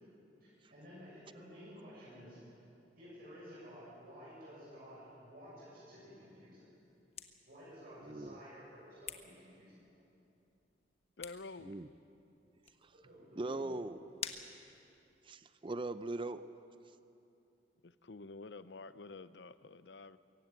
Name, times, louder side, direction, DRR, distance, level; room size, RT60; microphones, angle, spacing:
voice 1, 0.4-2.6 3.0-6.6 7.5-9.9 13.0-13.8, equal, 60° right, -7 dB, 7.3 m, -53 dB
sound 1, 6.7-15.4, left 7 dB, 35° left, 1.3 m, -52 dB
voice 2, 8.0-8.4 11.6-11.9 12.8-12.9 13.4-14.0 15.2-16.4, right 2 dB, 30° right, 12 dB, 0.5 m, -40 dB
voice 3, 11.2-11.8 17.8-20.2, left 3 dB, 70° left, 14 dB, 0.7 m, -49 dB
23.0 x 16.0 x 9.0 m, 2.8 s
head